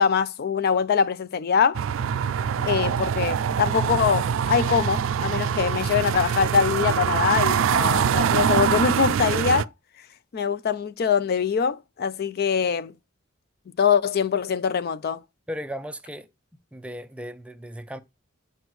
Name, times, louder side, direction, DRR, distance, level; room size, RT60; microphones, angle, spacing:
voice 1, 0.0-1.8 2.6-9.7 10.3-12.9 13.8-15.2, left 6 dB, 50° left, 0.4 m, -23 dB
sound 1, 1.7-9.6, right 7 dB, 70° right, 0.3 m, -24 dB
voice 2, 15.5-16.3 16.7-18.0, equal, 5° right, 0.4 m, -36 dB
7.9 x 5.1 x 3.1 m
head